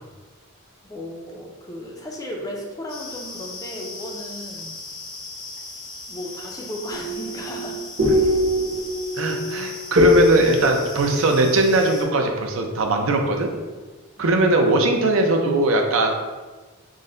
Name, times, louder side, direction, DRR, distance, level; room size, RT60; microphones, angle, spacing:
voice 1, 0.8-4.8 6.1-7.8 14.2-14.7, left 1 dB, 15° left, 0 dB, 0.4 m, -35 dB
sound 1, 2.9-12.0, left 3 dB, 90° left, 0.9 m, -38 dB
sound 2, 6.9-12.5, left 2 dB, 50° right, 0.9 m, -23 dB
voice 2, 9.2-13.5 14.2-16.1, right 2 dB, 70° right, 3 dB, 0.5 m, -20 dB
3.9 x 2.1 x 3.7 m, 1.3 s
head